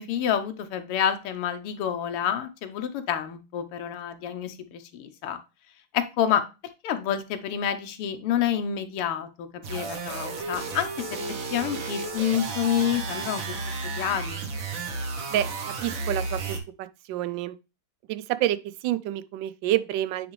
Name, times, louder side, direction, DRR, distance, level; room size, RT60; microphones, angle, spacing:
voice 1, 0.0-5.4 5.9-6.4 6.8-11.2 11.5-14.4, left 9 dB, 90° left, 1.8 m, -28 dB
sound 1, 9.6-16.6, right 3 dB, 50° right, 1.2 m, -33 dB
voice 2, 15.8-17.6 18.1-20.3, right 13 dB, 75° right, 1.1 m, -28 dB
9.9 x 3.4 x 3.1 m
omnidirectional pair, 2.4 m